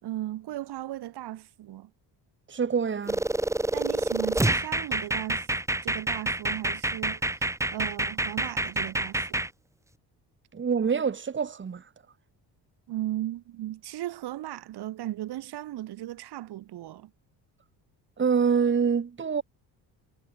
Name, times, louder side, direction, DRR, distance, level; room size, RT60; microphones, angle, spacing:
voice 1, 0.0-1.9 3.7-5.5 5.8-7.5 7.7-9.4 12.9-17.1, right 14 dB, 70° right, 2.7 m, -36 dB
voice 2, 2.5-3.2 10.5-11.8 18.2-19.4, right 6 dB, 30° right, 1.6 m, -25 dB
sound 1, 3.1-9.5, right 2 dB, 5° right, 1.1 m, -28 dB
cardioid pair, 95°, 41 cm